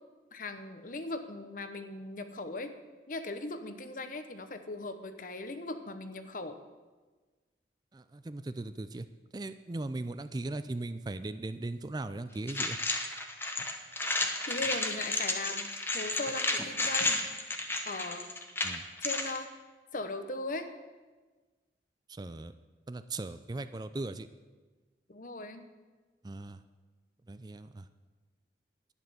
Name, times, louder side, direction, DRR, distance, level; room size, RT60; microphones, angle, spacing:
voice 1, 0.3-2.7 3.1-6.6 14.5-17.2 17.8-18.3 19.0-19.5 19.9-20.7 25.1-25.6, left 2 dB, 50° left, 9 dB, 1.0 m, -39 dB
voice 2, 7.9-9.1 9.3-12.8 18.6-18.9 22.1-22.5 22.9-24.3 26.2-26.6 27.3-27.9, right 2 dB, 25° right, 12 dB, 0.4 m, -38 dB
sound 1, 12.5-19.4, left 2 dB, 15° left, 1.1 m, -32 dB
11.0 x 10.5 x 6.9 m, 1.3 s
head